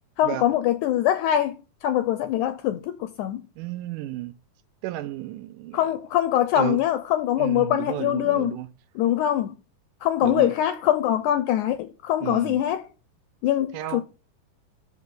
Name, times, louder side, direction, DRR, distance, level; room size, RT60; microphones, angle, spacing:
voice 1, 0.2-3.4 5.7-8.6 8.9-9.5 10.0-12.8 13.4-14.0, left 11 dB, 80° left, 1.8 m, -23 dB
voice 2, 3.6-4.3 4.8-5.9 6.6-6.8 7.4-8.7 10.2-10.5 12.2-12.6 13.7-14.0, right 15 dB, 80° right, 2.1 m, -32 dB
6.5 x 6.0 x 6.8 m
omnidirectional pair, 4.0 m